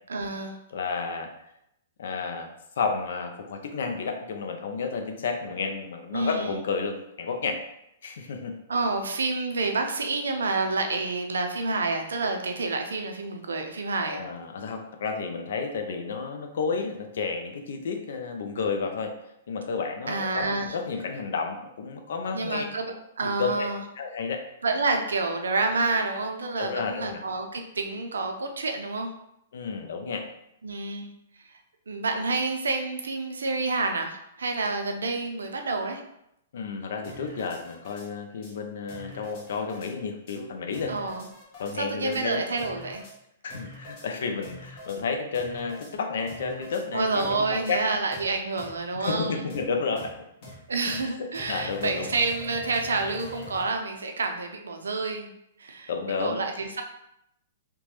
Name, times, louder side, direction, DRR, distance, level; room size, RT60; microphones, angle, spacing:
voice 1, 0.1-0.6 6.1-6.5 8.7-14.2 20.1-20.8 22.3-23.8 24.6-29.1 30.6-31.1 31.9-36.0 40.9-41.3 41.8-43.0 46.9-49.5 50.7-55.3 55.6-55.9 56.2-56.8, right 3 dB, 85° right, 4 dB, 0.4 m, -28 dB
voice 2, 0.7-1.3 2.0-2.5 2.8-7.6 8.0-8.6 14.0-19.1 19.5-22.6 23.4-23.7 24.0-24.4 26.6-27.2 29.5-30.3 36.5-40.9 41.6-42.4 43.4-47.8 49.0-50.1 50.8-52.1 55.9-56.4, left 5 dB, 70° left, 5 dB, 0.4 m, -31 dB
sound 1, 37.0-38.1 38.4-38.5 38.9-39.9 40.3-40.4 40.7-41.8 42.1-42.2 42.6-43.1 43.5-44.1 44.4-45.0 45.3-45.9 46.3-46.8 47.2-47.8 48.1-48.2 48.6-48.7 49.0-49.2 49.5-49.6 50.0-50.1 50.4-50.5 50.9-51.0 51.3-53.7, left 1 dB, 45° left, 1.0 m, -45 dB
2.9 x 2.2 x 2.9 m, 0.79 s
hypercardioid pair, 120°, 0 cm